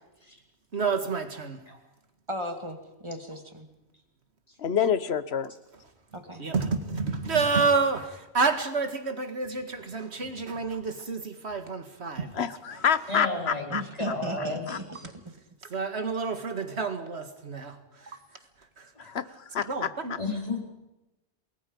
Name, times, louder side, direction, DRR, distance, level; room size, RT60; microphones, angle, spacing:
voice 1, 0.7-1.6 6.4-12.5 15.7-18.2 18.8-19.1 19.7-20.1, right 4 dB, 85° right, 8 dB, 2.2 m, -29 dB
voice 2, 2.3-3.7 6.1-6.4 13.7-14.8 15.2-15.3, equal, 25° right, 5 dB, 2.4 m, -36 dB
voice 3, 4.6-5.5 12.3-13.8 14.7-14.8 19.0-20.2, left 7 dB, 75° left, 15 dB, 1.2 m, -28 dB
voice 4, 13.1-14.8 17.1-17.2 18.9-19.0 20.2-20.6, left 2 dB, 35° left, 1 dB, 4.5 m, -33 dB
28.5 x 20.5 x 5.3 m, 1.0 s
omnidirectional pair, 1.1 m